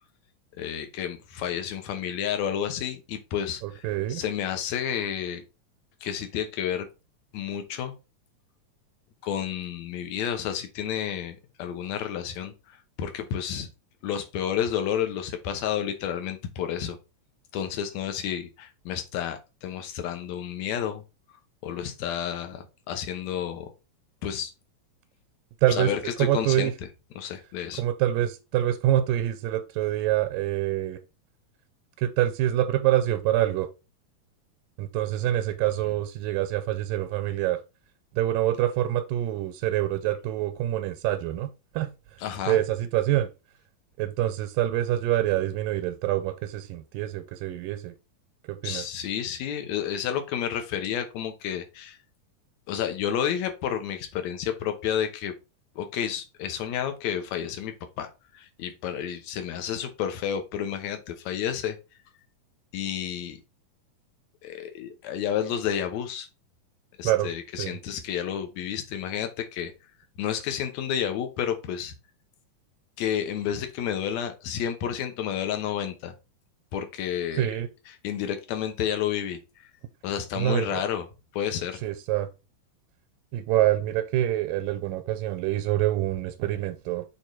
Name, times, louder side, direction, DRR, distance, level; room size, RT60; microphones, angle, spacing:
voice 1, 0.6-5.4 6.0-6.9 7.3-7.9 9.2-12.5 13.0-13.7 14.0-17.0 17.5-21.0 21.6-23.7 24.2-24.5 25.8-26.7 27.2-27.8 42.2-42.6 48.6-52.0 52.7-55.3 55.8-61.8 62.7-63.4 64.4-66.3 67.0-69.7 70.2-71.9 73.0-76.1 76.7-77.5 78.0-79.4 80.0-81.1 81.3-81.8, left 9 dB, 65° left, 2.0 m, -30 dB
voice 2, 3.6-4.2 25.6-25.9 26.2-26.7 27.8-31.0 32.0-33.7 34.8-37.6 38.2-41.9 42.5-43.3 44.0-47.9 48.5-48.8 67.0-67.3 67.6-67.8 77.3-77.7 80.3-80.8 81.8-82.3 83.3-87.0, right 13 dB, 85° right, 2.2 m, -26 dB
6.7 x 3.6 x 4.6 m
omnidirectional pair, 3.9 m